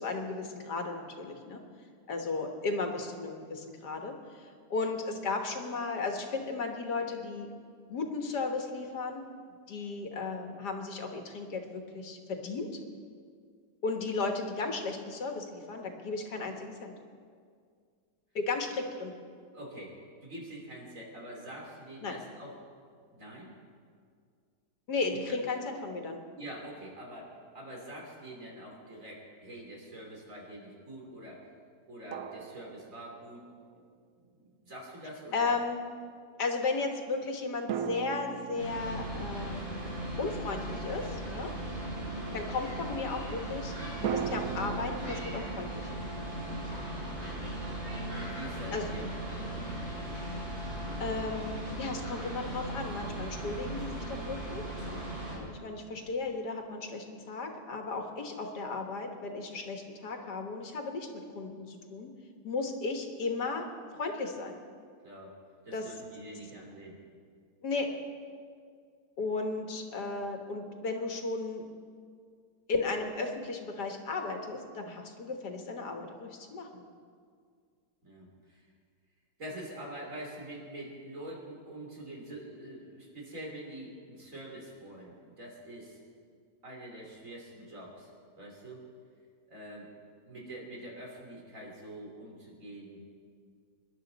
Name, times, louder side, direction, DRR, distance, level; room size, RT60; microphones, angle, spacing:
voice 1, 0.0-1.6 2.1-7.5 7.9-9.2 9.7-12.7 13.8-16.9 18.4-19.1 22.0-22.2 24.9-26.2 35.3-35.8 36.4-39.9 40.2-41.5 42.3-46.0 48.7-48.9 51.0-55.0 55.3-61.1 61.4-62.1 62.4-64.6 65.7-65.9 67.6-67.9 69.2-71.6 72.7-76.8, left 3 dB, 85° left, 4 dB, 2.0 m, -35 dB
voice 2, 19.5-22.6 23.1-23.5 25.1-25.4 26.4-31.4 31.9-33.5 33.7-33.8 34.3-35.6 42.1-42.4 48.1-49.7 65.0-65.3 65.7-67.0 78.0-78.6 79.4-86.0 86.6-88.9 89.5-89.9 90.2-93.0, right 1 dB, 50° right, -2 dB, 3.6 m, -45 dB
sound 1, 28.5-28.6 32.1-33.6 37.7-41.3 44.0-46.8, right 8 dB, 70° right, 1.1 m, -39 dB
sound 2, 38.6-55.4, right 1 dB, 85° right, 6.1 m, -38 dB
25.0 x 11.5 x 4.1 m, 2.1 s
omnidirectional pair, 1.7 m